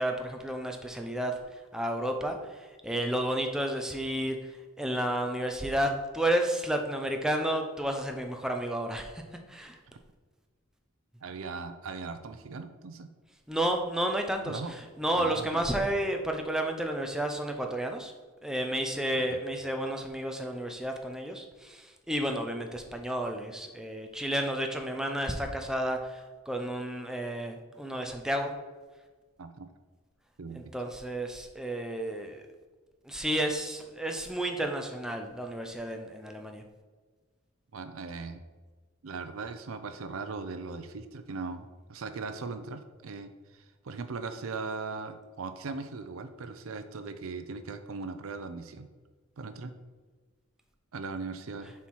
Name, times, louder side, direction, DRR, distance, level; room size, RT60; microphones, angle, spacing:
voice 1, 0.0-1.3 1.7-4.5 4.8-9.2 9.5-9.8 13.5-18.1 18.4-28.5 30.5-32.4 33.0-36.6, right 1 dB, 5° right, 3 dB, 0.5 m, -31 dB
voice 2, 11.2-13.1 14.5-14.8 15.1-15.6 19.1-19.4 29.4-29.7 30.4-30.6 37.7-38.4 39.0-48.9 49.4-49.7 50.9-51.7, right 4 dB, 80° right, 9 dB, 0.6 m, -39 dB
7.1 x 4.4 x 4.6 m, 1.4 s
head